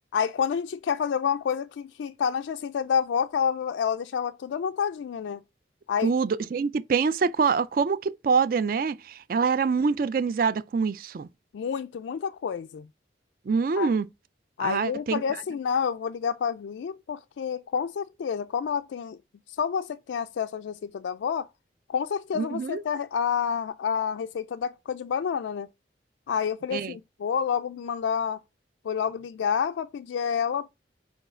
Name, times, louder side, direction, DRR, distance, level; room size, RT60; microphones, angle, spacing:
voice 1, 0.1-5.4 5.9-6.1 11.5-12.9 13.8-13.9 14.6-19.2 19.6-21.5 21.9-25.7 26.3-28.4 28.8-30.7, left 7 dB, 85° left, 0.3 m, -29 dB
voice 2, 6.0-11.3 13.5-14.1 14.6-15.2 22.3-22.8 26.7-27.0, right 5 dB, 50° right, 0.3 m, -25 dB
4.8 x 4.6 x 4.3 m
head